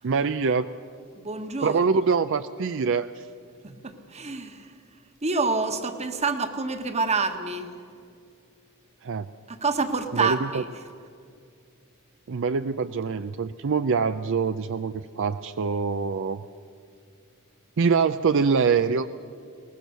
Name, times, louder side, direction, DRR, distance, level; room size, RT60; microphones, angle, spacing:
voice 1, 0.0-0.7 1.6-3.3 9.0-9.3 10.1-10.6 12.3-16.4 17.8-19.1, right 5 dB, 60° right, 11 dB, 0.5 m, -24 dB
voice 2, 1.2-1.8 3.6-4.7 5.2-7.7 9.5-10.6, right 4 dB, 30° right, 8 dB, 1.4 m, -27 dB
22.0 x 19.0 x 6.8 m, 2.4 s
head